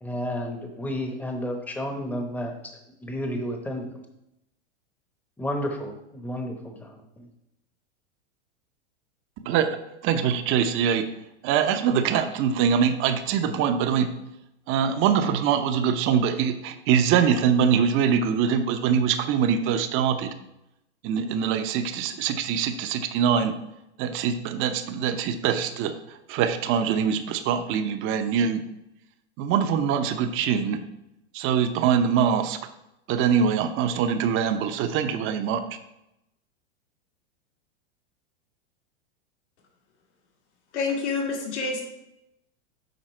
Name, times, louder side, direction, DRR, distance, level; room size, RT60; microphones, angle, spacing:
voice 1, 0.0-3.9 5.4-7.3, equal, 5° left, 3 dB, 0.9 m, -32 dB
voice 2, 10.0-11.0 11.4-14.1 14.7-20.3 21.0-23.5 24.0-28.6 29.4-30.8 31.3-32.6 33.1-35.6, right 7 dB, 35° right, 9 dB, 0.8 m, -23 dB
voice 3, 40.7-41.8, left 4 dB, 85° left, -2 dB, 2.6 m, -27 dB
8.0 x 4.8 x 4.4 m, 0.86 s
supercardioid pair, 130°, 34 cm